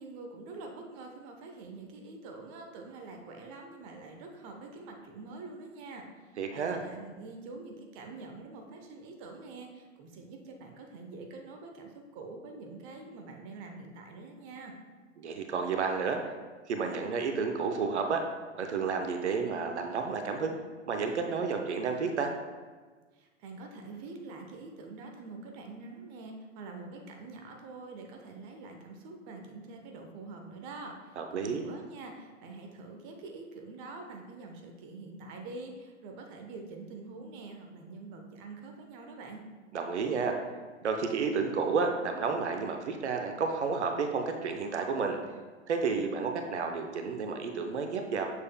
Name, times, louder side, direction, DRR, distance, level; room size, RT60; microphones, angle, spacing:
voice 1, 0.0-14.7 23.1-39.4, right 3 dB, 30° right, 2 dB, 0.7 m, -45 dB
voice 2, 6.4-6.8 15.2-16.2 16.7-18.2 18.6-20.6 20.9-22.3 31.2-31.6 39.7-40.3 40.8-45.2 45.7-48.3, right 5 dB, 60° right, 4 dB, 0.7 m, -31 dB
7.1 x 6.3 x 2.2 m, 1.4 s
figure-of-eight pair, 100°, 38 cm